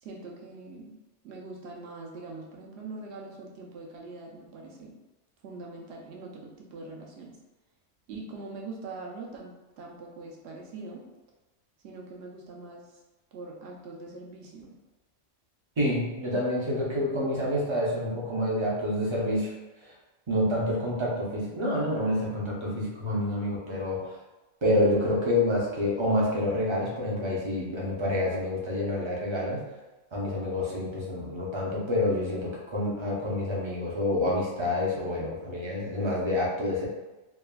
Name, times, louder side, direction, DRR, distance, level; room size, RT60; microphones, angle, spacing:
voice 1, 0.0-1.0 1.2-5.0 5.4-7.4 8.1-11.0 11.8-13.0 13.3-14.7, right 3 dB, 70° right, -1 dB, 0.8 m, -43 dB
voice 2, 15.8-19.5 19.8-19.9 20.3-24.2 24.6-29.6 30.1-36.9, left 1 dB, 35° right, -4 dB, 0.5 m, -28 dB
3.2 x 2.1 x 2.2 m, 1.1 s
omnidirectional pair, 1.2 m